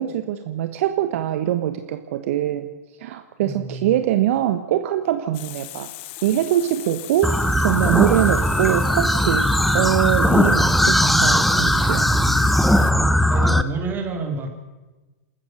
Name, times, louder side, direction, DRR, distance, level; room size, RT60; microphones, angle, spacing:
voice 1, 0.0-2.7 3.0-5.9 6.2-9.5 9.7-12.1, right 12 dB, 55° right, 9 dB, 1.2 m, -23 dB
voice 2, 3.4-4.0 13.3-14.5, right 3 dB, 25° right, 4 dB, 3.9 m, -29 dB
Water tap faucet, 5.3-12.9, left 16 dB, 50° left, 1.2 m, -38 dB
sound 1, 7.2-13.6, equal, ahead, 1.0 m, -18 dB
27.0 x 14.5 x 6.6 m, 1.2 s
hypercardioid pair, 105°, 9 cm